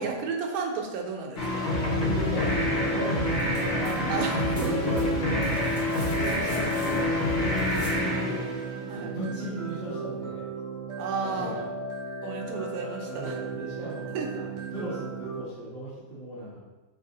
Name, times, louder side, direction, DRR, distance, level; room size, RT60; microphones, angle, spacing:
voice 1, 0.0-1.7 4.1-4.7 8.9-9.1 11.0-11.6 12.2-13.4 14.1-14.3, right 5 dB, 85° right, 2 dB, 1.1 m, -32 dB
sound 1, 1.4-9.1, left 1 dB, 55° left, 0.9 m, -27 dB
voice 2, 1.8-4.1 4.6-5.7 6.0-8.5 8.9-10.4 11.3-11.6 12.4-12.6 13.0-16.6, right 1 dB, 30° left, -10 dB, 1.2 m, -37 dB
sound 2, 2.6-15.4, right 4 dB, 60° right, 0.4 m, -36 dB
sound 3, 3.3-3.9 4.2-8.0 9.7-9.8, equal, 20° right, 0.7 m, -47 dB
2.7 x 2.6 x 3.8 m, 1.2 s
omnidirectional pair, 1.5 m